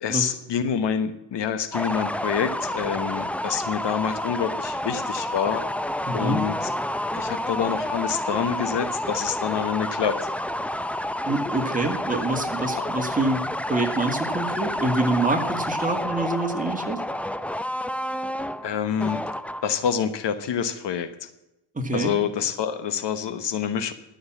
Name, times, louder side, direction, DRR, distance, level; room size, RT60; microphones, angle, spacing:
voice 1, 0.0-5.7 6.1-6.7 7.1-10.2 12.8-12.9 18.6-19.2 19.6-21.3 21.9-23.9, left 8 dB, 60° left, 12 dB, 1.1 m, -27 dB
sound 1, 1.7-19.9, left 1 dB, 5° left, 0.5 m, -29 dB
voice 2, 6.1-6.4 11.3-17.0 21.7-22.1, right 2 dB, 15° right, 4 dB, 2.1 m, -26 dB
13.0 x 6.5 x 7.2 m, 0.91 s
supercardioid pair, 70°, 47 cm